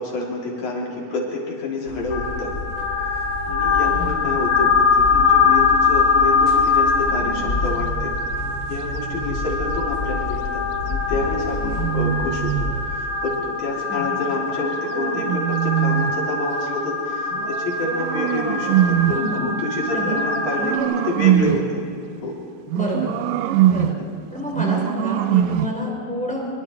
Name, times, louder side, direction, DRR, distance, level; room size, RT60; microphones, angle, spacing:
voice 1, 0.0-2.5 3.1-8.1 8.7-20.8 21.0-21.8 22.2-22.4 23.7-24.1, left 2 dB, 60° left, -2 dB, 4.9 m, -28 dB
sound 1, 1.9-12.9, left 2 dB, 40° left, 4.4 m, -31 dB
sound 2, 2.1-20.8, left 5 dB, 80° left, 3.3 m, -23 dB
voice 2, 3.9-4.2 13.9-14.1 19.1-19.5 19.9-20.1 20.6-20.9 21.4-21.7 22.7-23.2 23.7-24.0 24.3-26.6, equal, ahead, -2 dB, 4.2 m, -28 dB
sound 3, 7.1-9.5 11.1-12.9 14.3-16.3 17.3-19.3 20.0-21.8 22.7-24.1 24.5-25.8, right 12 dB, 80° right, 2.2 m, -24 dB
24.5 x 23.5 x 4.7 m, 2.7 s
omnidirectional pair, 4.0 m